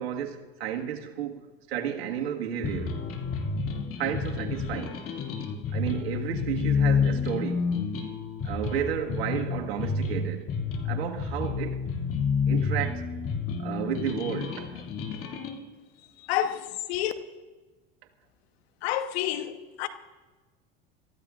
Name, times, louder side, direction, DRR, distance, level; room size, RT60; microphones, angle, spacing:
voice 1, 0.0-3.0 4.0-5.0 5.7-7.8 8.4-10.5 10.8-11.8 12.5-13.1 13.6-14.9, right 9 dB, 85° right, 1.8 m, -32 dB
sound 1, 2.6-15.6, left 5 dB, 45° left, 2.5 m, -29 dB
voice 2, 16.2-17.1 18.8-19.9, left 12 dB, 75° left, 1.2 m, -29 dB
28.0 x 14.5 x 2.5 m
hypercardioid pair, 90°, 31 cm